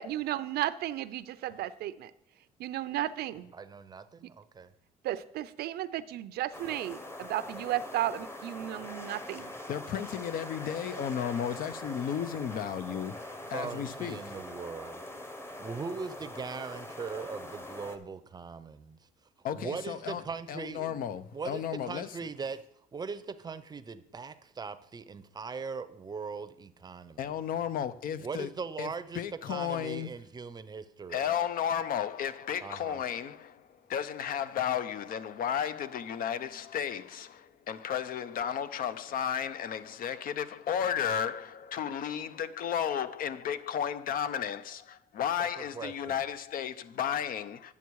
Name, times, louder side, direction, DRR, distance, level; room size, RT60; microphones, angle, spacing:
voice 1, 0.0-2.1 2.6-3.5 4.2-4.3 5.0-9.5, right 13 dB, 70° right, 0.5 m, -34 dB
voice 2, 3.5-4.7 13.5-15.0 15.6-19.0 19.5-20.9 21.3-22.6 22.9-27.3 28.2-31.2 32.6-33.0 45.4-46.2, right 5 dB, 25° right, 0.6 m, -40 dB
sound 1, 6.5-18.0, left 1 dB, 15° left, 1.0 m, -43 dB
voice 3, 9.7-13.1 13.5-14.2 19.4-20.2 20.5-22.1 27.2-28.5 28.8-30.1 31.1-47.7, left 8 dB, 55° left, 0.6 m, -33 dB
9.8 x 7.0 x 4.7 m
cardioid pair, 110°, 17 cm